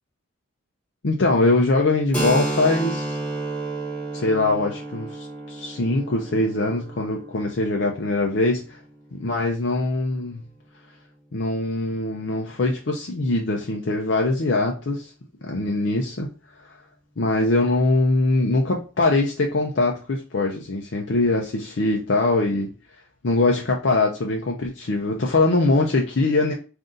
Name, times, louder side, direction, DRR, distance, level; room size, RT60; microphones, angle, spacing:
voice 1, 1.0-3.2 4.1-8.8 9.1-10.4 11.3-15.1 15.4-16.3 16.6-16.8 17.2-22.7 23.2-26.5, left 2 dB, 65° left, 0 dB, 0.6 m, -22 dB
Keyboard (musical), 2.1-9.5, right 2 dB, 5° left, 1.1 m, -31 dB
3.9 x 2.6 x 3.7 m, 0.35 s
head